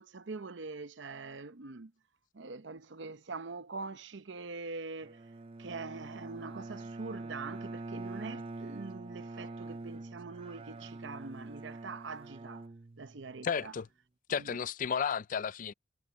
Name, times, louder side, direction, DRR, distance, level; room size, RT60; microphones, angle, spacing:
voice 1, 0.0-1.9 2.3-5.2 5.6-12.7 13.0-13.7 14.4-14.6, right 4 dB, 70° right, 0.8 m, -43 dB
Bowed string instrument, 5.0-13.5, right 2 dB, 30° right, 0.5 m, -45 dB
voice 2, 13.4-13.9 14.3-15.7, left 7 dB, 45° left, 0.4 m, -33 dB
head